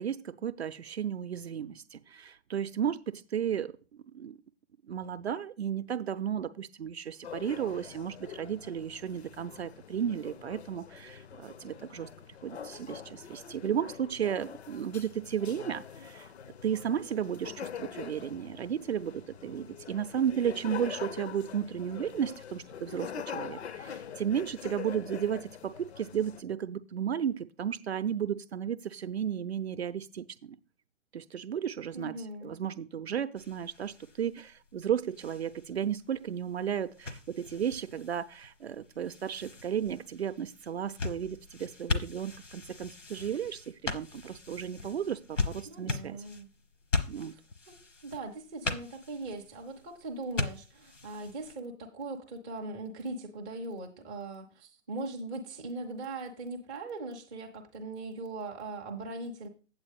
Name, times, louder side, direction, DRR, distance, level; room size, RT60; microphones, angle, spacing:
voice 1, 0.0-3.7 4.1-4.4 4.9-12.1 12.4-16.3 16.6-30.6 31.1-32.1 32.4-46.2 47.1-47.3, right 9 dB, 60° right, 0.6 m, -34 dB
sound 1, 7.2-26.4, left 8 dB, 60° left, 0.6 m, -44 dB
voice 2, 31.9-32.5 45.6-46.5 47.3-47.4 47.7-59.5, right 2 dB, 5° right, 0.4 m, -40 dB
sound 2, 33.4-51.6, left 3 dB, 85° left, 1.1 m, -39 dB
8.1 x 7.9 x 3.4 m
figure-of-eight pair, 120°, 36 cm